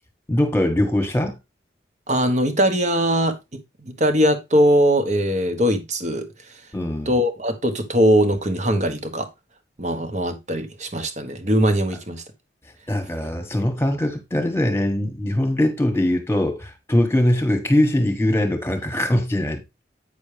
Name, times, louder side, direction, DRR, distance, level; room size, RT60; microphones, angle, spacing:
voice 1, 0.3-1.4 6.7-7.1 12.9-19.6, left 1 dB, 15° left, 1.4 m, -21 dB
voice 2, 2.1-6.3 7.0-9.3 9.8-12.2, equal, 40° right, 1.2 m, -21 dB
8.4 x 6.3 x 3.3 m
head